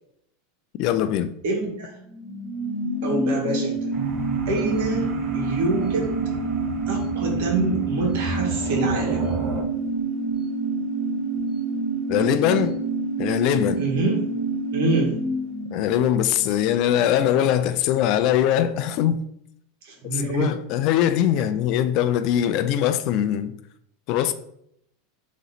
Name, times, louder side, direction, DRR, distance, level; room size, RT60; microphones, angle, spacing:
voice 1, 0.8-1.3 12.1-12.8 13.2-13.8 15.7-19.2 20.0-23.5 24.1-24.3, left 10 dB, 50° left, 0.4 m, -22 dB
voice 2, 1.4-1.9 3.0-3.7 4.5-6.1 6.9-9.3 13.8-14.2 14.7-15.1 19.8-20.5, right 2 dB, 70° right, 1.6 m, -26 dB
sound 1, 1.9-17.1 17.4-17.5, right 3 dB, 5° right, 1.4 m, -27 dB
sound 2, 3.9-9.6, right 5 dB, 35° right, 0.8 m, -33 dB
3.9 x 3.1 x 4.0 m
supercardioid pair, 135°, 0 cm